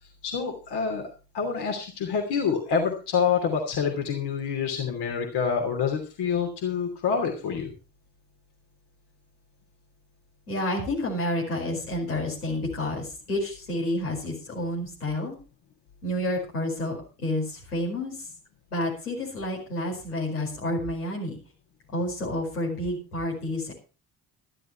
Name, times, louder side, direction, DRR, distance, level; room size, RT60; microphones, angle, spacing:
voice 1, 0.2-1.0 1.3-7.7, left 6 dB, 60° left, 2 dB, 3.0 m, -27 dB
voice 2, 10.5-15.3 16.0-17.4 17.7-18.1 18.7-21.4 21.9-23.7, left 1 dB, 90° left, -4 dB, 5.0 m, -29 dB
13.0 x 12.0 x 4.6 m, 0.34 s
figure-of-eight pair, 45°, 44 cm